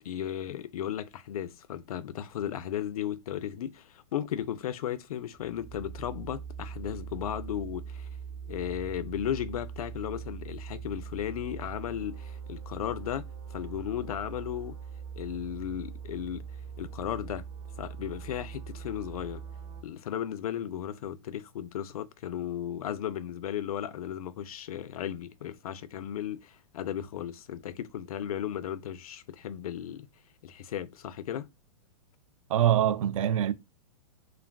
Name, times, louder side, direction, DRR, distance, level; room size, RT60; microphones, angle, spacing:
voice 1, 0.0-8.1 8.5-14.8 15.2-16.4 16.8-17.5 17.8-19.4 19.8-30.1 30.4-31.5, left 10 dB, 85° left, 0.5 m, -35 dB
sound 1, 5.4-19.8, right 7 dB, 25° right, 0.7 m, -42 dB
voice 2, 32.5-33.5, right 11 dB, 65° right, 0.4 m, -24 dB
2.4 x 2.2 x 3.3 m
supercardioid pair, 165°, 18 cm